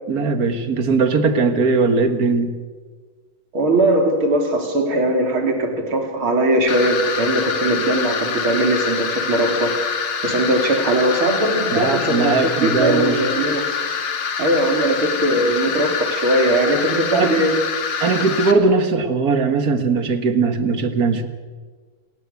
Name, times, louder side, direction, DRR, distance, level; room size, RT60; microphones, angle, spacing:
voice 1, 0.1-2.6 11.7-13.2 17.1-17.4 18.0-21.3, right 4 dB, 45° right, 9 dB, 2.1 m, -19 dB
voice 2, 3.5-9.8 10.2-13.6 14.4-17.6, right 1 dB, 75° right, 4 dB, 4.3 m, -20 dB
sound 1, 6.7-18.5, left 6 dB, 75° left, 2.8 m, -25 dB
28.5 x 19.5 x 8.4 m, 1.5 s
omnidirectional pair, 2.3 m